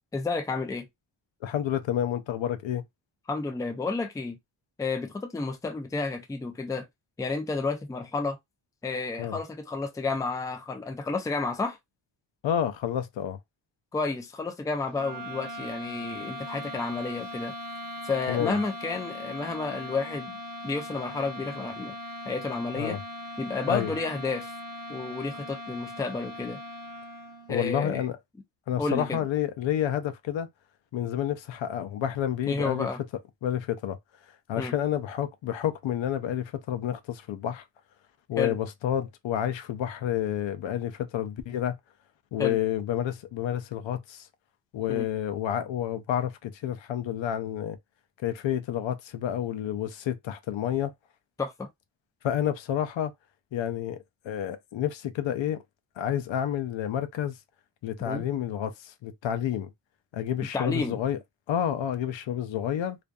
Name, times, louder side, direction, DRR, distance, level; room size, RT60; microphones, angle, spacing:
voice 1, 0.1-0.9 3.3-4.4 4.8-6.9 7.2-8.4 8.8-11.8 13.9-17.5 18.0-20.4 20.6-22.0 22.3-23.0 23.4-24.5 24.9-26.6 27.5-28.0 28.8-29.2 32.5-33.0 34.6-34.7 38.4-38.6 42.4-42.6 44.9-45.1 51.4-51.7 58.1-58.2 60.5-61.0, left 3 dB, 10° left, 0.3 m, -31 dB
voice 2, 1.4-2.8 9.2-9.4 12.4-13.4 18.3-18.6 22.7-23.0 23.7-23.9 27.5-28.2 28.7-30.5 30.9-32.9 33.4-34.0 34.5-37.6 38.3-41.8 42.3-44.3 44.7-47.8 48.2-50.9 52.2-53.1 53.5-55.6 56.0-57.4 57.8-59.7 60.1-61.2 61.5-63.0, left 10 dB, 75° left, 0.5 m, -29 dB
sound 1, 14.9-27.6, left 1 dB, 55° right, 0.9 m, -39 dB
2.5 x 2.5 x 2.2 m
wide cardioid pair, 145°, 45 cm